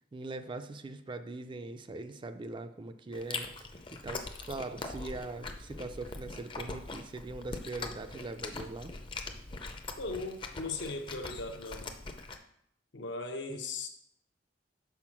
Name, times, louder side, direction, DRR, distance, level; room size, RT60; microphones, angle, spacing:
voice 1, 0.1-3.5 3.9-8.9 13.5-13.6, right 2 dB, 25° right, 9 dB, 0.4 m, -41 dB
Chewing mastication, 3.1-12.4, left 3 dB, 25° left, 0.5 m, -42 dB
voice 2, 10.0-11.9 12.9-13.9, left 3 dB, 75° left, 5 dB, 0.9 m, -38 dB
5.7 x 4.5 x 6.0 m, 0.72 s
head